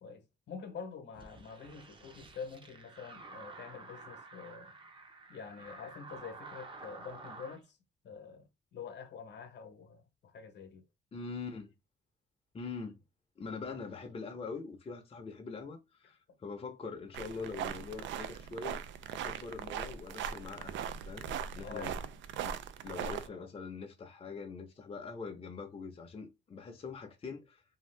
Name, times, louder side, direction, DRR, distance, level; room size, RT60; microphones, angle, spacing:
voice 1, 0.0-4.7 5.3-7.8 8.0-10.9 21.6-21.9, left 6 dB, 60° left, 0.9 m, -46 dB
sound 1, 1.1-7.6, right 3 dB, 25° right, 0.6 m, -51 dB
voice 2, 11.1-11.7 12.5-13.0 13.4-18.8 19.1-21.3 21.5-22.0 22.4-22.6 22.8-27.6, left 4 dB, 30° left, 0.6 m, -43 dB
sound 2, 17.1-23.3, right 8 dB, 70° right, 0.4 m, -40 dB
2.7 x 2.3 x 3.2 m
cardioid pair, 90°, 20 cm